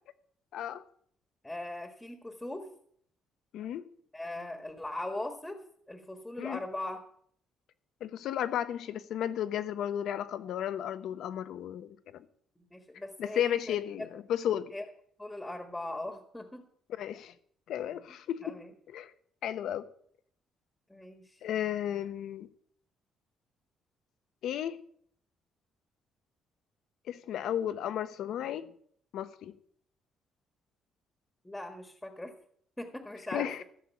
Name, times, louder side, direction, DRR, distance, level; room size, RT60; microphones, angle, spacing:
voice 1, 0.5-0.8 3.5-3.8 6.4-6.6 8.0-12.2 13.2-14.7 17.0-17.3 17.7-18.5 18.9-19.1 19.4-19.9 21.4-22.5 24.4-24.8 27.1-28.7 29.1-29.5 33.3-33.6, left 10 dB, 70° left, 1.0 m, -34 dB
voice 2, 1.4-2.7 4.1-5.6 5.9-7.0 12.7-14.1 14.7-14.8 15.2-16.7 18.4-18.7 20.9-21.4 31.4-32.3 32.8-33.6, left 1 dB, 10° left, 1.5 m, -40 dB
14.5 x 6.5 x 8.4 m
cardioid pair, 130°, 0 cm